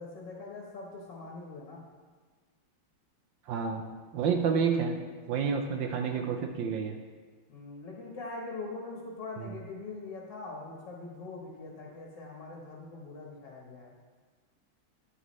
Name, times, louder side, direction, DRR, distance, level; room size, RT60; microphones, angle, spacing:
voice 1, 0.0-1.8 7.5-14.0, left 3 dB, 65° left, -2 dB, 1.8 m, -42 dB
voice 2, 3.5-3.8 4.1-4.9 5.3-7.0 9.4-9.5, right 6 dB, 70° right, 5 dB, 1.4 m, -29 dB
9.4 x 8.7 x 3.1 m, 1.5 s
omnidirectional pair, 2.2 m